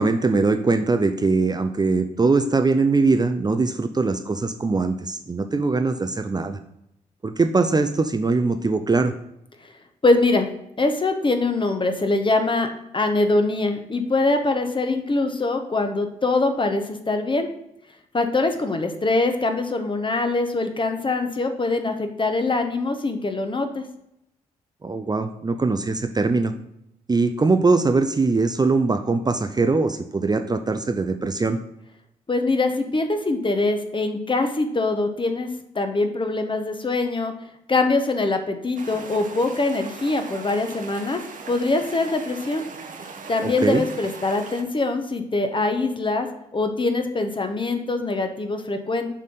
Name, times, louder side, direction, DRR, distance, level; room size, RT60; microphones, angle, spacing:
voice 1, 0.0-6.6 7.2-9.1 24.8-26.5 27.1-31.6 43.4-43.8, right 3 dB, 25° right, 8 dB, 0.5 m, -21 dB
voice 2, 10.0-10.5 10.8-12.7 12.9-17.5 18.1-23.8 32.3-35.5 35.7-37.3 37.7-41.2 41.5-42.6 43.3-46.3 46.5-49.1, left 2 dB, 30° left, 6 dB, 1.0 m, -23 dB
sound 1, 38.8-44.6, right 4 dB, 50° right, 1.0 m, -39 dB
6.5 x 3.5 x 5.5 m, 0.80 s
hypercardioid pair, 40°, 17 cm